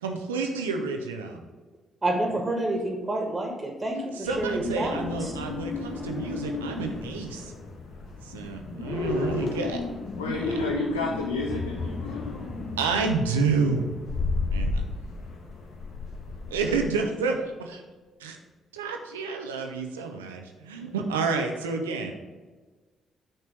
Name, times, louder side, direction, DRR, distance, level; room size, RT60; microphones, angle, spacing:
voice 1, 0.0-1.4 4.1-7.5 8.2-9.8 10.3-10.5 12.8-13.9 14.5-14.8 16.5-17.8 18.2-18.4 18.7-22.2, right 4 dB, 85° right, 4 dB, 0.7 m, -29 dB
voice 2, 2.0-5.3, right 2 dB, 25° right, 1 dB, 1.8 m, -29 dB
sound 1, 4.3-16.8, left 3 dB, 60° left, 1.2 m, -33 dB
voice 3, 10.2-12.3, left 3 dB, 90° left, 0 dB, 0.6 m, -31 dB
sound 2, 11.4-17.6, left 3 dB, 25° left, 1.5 m, -42 dB
6.4 x 4.4 x 6.2 m, 1.3 s
hypercardioid pair, 45°, 0 cm